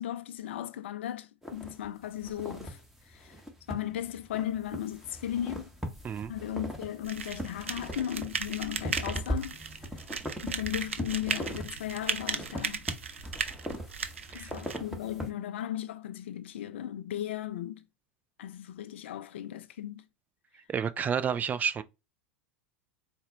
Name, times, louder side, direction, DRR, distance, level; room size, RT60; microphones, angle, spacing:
voice 1, 0.0-2.8 3.1-3.3 3.7-5.7 6.3-9.6 10.4-12.8 14.3-17.8 18.4-20.0, left 11 dB, 70° left, 0.4 m, -36 dB
sound 1, 1.4-15.3, equal, 5° right, 1.1 m, -40 dB
sound 2, 7.0-14.8, right 6 dB, 85° right, 0.5 m, -36 dB
voice 2, 20.7-21.8, right 7 dB, 25° right, 0.4 m, -30 dB
4.1 x 2.2 x 3.8 m
hypercardioid pair, 85°, 7 cm